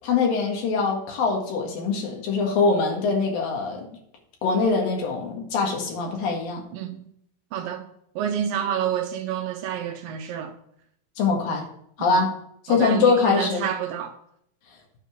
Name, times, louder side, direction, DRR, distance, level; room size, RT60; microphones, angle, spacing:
voice 1, 0.0-3.9 4.4-6.6 11.2-11.6 12.0-12.3 12.7-13.6, left 4 dB, 70° left, 3.4 m, -23 dB
voice 2, 6.7-7.1 7.5-7.9 8.2-10.5 12.0-12.2 12.7-14.2, right 9 dB, 75° right, 2.3 m, -29 dB
9.3 x 5.5 x 7.4 m
omnidirectional pair, 4.4 m